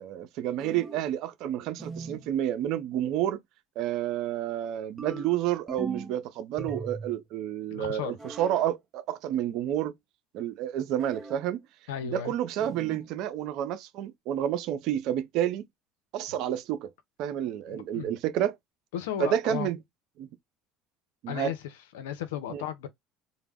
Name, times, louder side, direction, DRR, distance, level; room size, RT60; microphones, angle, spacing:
voice 1, 0.0-3.4 3.8-9.9 10.3-11.6 12.0-15.7 16.1-16.9 17.2-18.6 19.2-19.8 20.2-20.3 21.2-21.5 22.5-22.6, right 11 dB, 65° right, 0.4 m, -30 dB
sound 1, 0.6-1.1 1.8-2.3 5.0-6.2 6.6-7.2 8.2-8.7 11.0-11.5 12.6-13.1, right 3 dB, 20° right, 0.5 m, -39 dB
voice 2, 7.7-8.2 11.9-12.3 17.7-18.1 18.9-19.7 21.3-21.6 21.9-22.9, left 10 dB, 85° left, 0.5 m, -34 dB
2.1 x 2.0 x 3.4 m
supercardioid pair, 90°, 0 cm